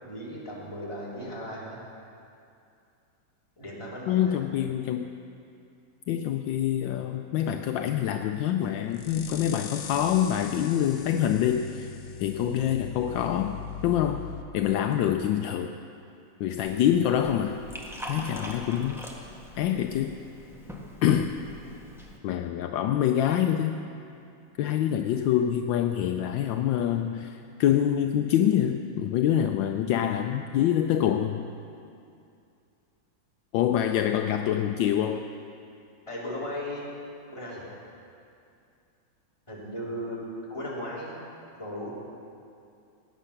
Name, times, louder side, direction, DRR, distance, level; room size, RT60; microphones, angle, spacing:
voice 1, 0.0-1.8 3.6-4.3 36.1-36.8 37.3-37.7 39.5-40.2 40.5-41.2 41.6-41.9, equal, 15° left, -7 dB, 3.3 m, -36 dB
voice 2, 4.1-5.1 6.1-11.9 12.2-14.2 14.5-15.7 16.4-17.6 18.1-19.0 19.6-20.2 21.0-21.4 22.2-23.8 24.6-31.5 33.5-35.3, left 10 dB, 80° left, 6 dB, 1.3 m, -26 dB
sound 1, 7.3-14.4, left 7 dB, 55° left, 1.0 m, -41 dB
Liquid, 16.6-22.2, equal, ahead, 1.3 m, -43 dB
20.0 x 9.4 x 5.8 m, 2.5 s
omnidirectional pair, 2.1 m